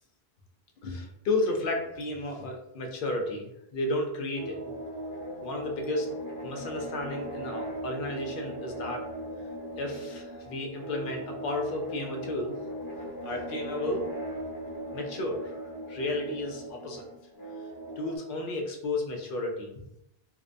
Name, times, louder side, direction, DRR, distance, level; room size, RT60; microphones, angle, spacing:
voice 1, 0.8-4.6 5.4-6.2 6.4-9.1 9.8-12.5 13.2-14.1 14.9-15.6 15.9-17.0 18.0-19.7, left 2 dB, 65° left, 2 dB, 0.7 m, -32 dB
sound 1, 4.4-18.2, right 1 dB, 80° left, 1.0 m, -39 dB
2.6 x 2.1 x 2.4 m, 0.81 s
omnidirectional pair, 1.0 m